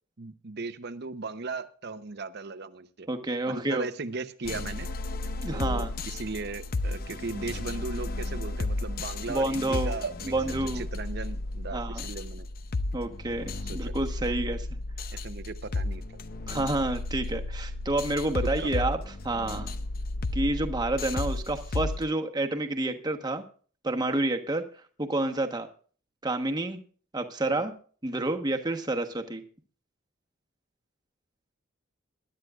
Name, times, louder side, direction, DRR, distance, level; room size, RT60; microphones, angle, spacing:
voice 1, 0.2-3.1 3.5-4.9 5.5-12.5 13.6-13.9 15.2-16.0 18.6-18.9, right 3 dB, 55° right, 10 dB, 0.8 m, -37 dB
voice 2, 3.1-3.9 5.4-5.9 9.3-9.9 10.3-10.8 11.7-12.0 12.9-14.7 16.5-19.7 20.3-23.4 23.8-24.6 25.0-25.7 26.2-26.8 27.1-27.7 28.0-29.4, right 2 dB, 20° right, 4 dB, 1.2 m, -29 dB
sound 1, 4.4-22.1, left 2 dB, 45° left, 0.7 m, -33 dB
21.5 x 11.5 x 2.4 m, 0.42 s
head